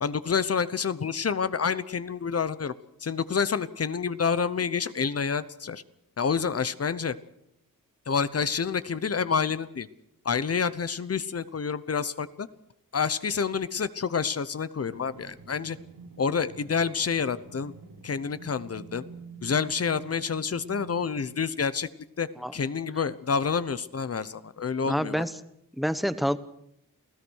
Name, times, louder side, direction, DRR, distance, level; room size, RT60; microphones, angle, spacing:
voice 1, 0.0-2.7 3.0-5.8 6.2-7.1 8.1-9.9 10.2-12.5 12.9-15.8 16.2-17.7 18.0-19.0 19.4-21.9 22.2-25.2, left 6 dB, 45° left, 15 dB, 1.0 m, -28 dB
sound 1, 14.8-21.5, right 4 dB, 85° right, 4.3 m, -48 dB
voice 2, 24.8-25.3 25.8-26.4, equal, ahead, 13 dB, 1.0 m, -27 dB
28.0 x 17.0 x 6.4 m, 0.76 s
wide cardioid pair, 135°, 34 cm